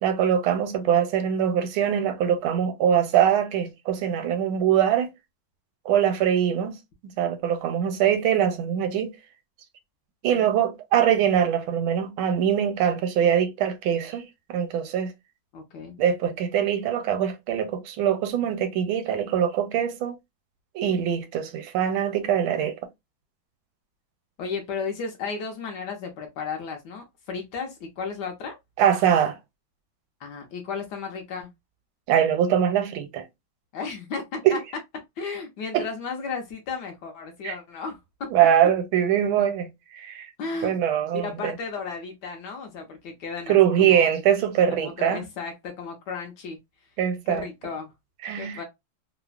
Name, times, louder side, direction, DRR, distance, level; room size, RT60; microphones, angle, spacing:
voice 1, 0.0-5.1 5.8-6.8 7.0-9.2 10.2-15.1 16.0-20.2 20.7-22.7 28.8-29.4 32.1-33.2 34.4-34.6 35.7-35.9 37.4-37.6 38.3-40.3 40.6-41.5 43.5-45.2 47.0-47.5 48.2-48.6, right 9 dB, 85° right, 1.3 m, -23 dB
voice 2, 15.5-16.0 24.4-28.6 30.2-31.5 33.7-34.6 35.2-38.3 40.4-40.7 41.1-44.1 44.7-46.6 47.3-47.9 48.4-48.6, left 5 dB, 70° left, 1.1 m, -34 dB
3.3 x 2.0 x 2.3 m
omnidirectional pair, 2.2 m